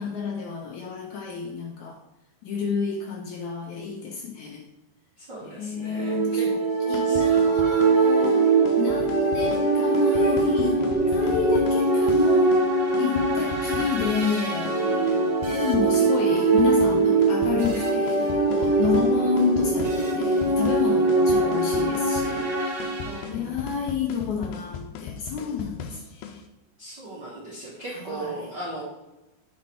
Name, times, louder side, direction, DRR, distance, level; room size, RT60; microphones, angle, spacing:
voice 1, 0.0-2.0 2.4-4.6 5.4-6.6 6.9-10.8 11.1-12.6 13.0-15.2 15.5-22.5 23.2-26.4 27.9-28.5, left 6 dB, 75° left, 2 dB, 1.9 m, -29 dB
voice 2, 5.2-6.5 6.8-7.6 13.1-13.2 14.8-15.3 18.5-18.7 20.8-20.9 23.0-23.6 26.8-28.8, right 2 dB, 55° right, -6 dB, 1.1 m, -38 dB
sound 1, 6.0-23.2, right 3 dB, 90° right, 0.9 m, -22 dB
sound 2, 6.7-26.5, left 7 dB, 90° left, 2.4 m, -39 dB
8.5 x 4.3 x 4.4 m, 0.98 s
omnidirectional pair, 4.1 m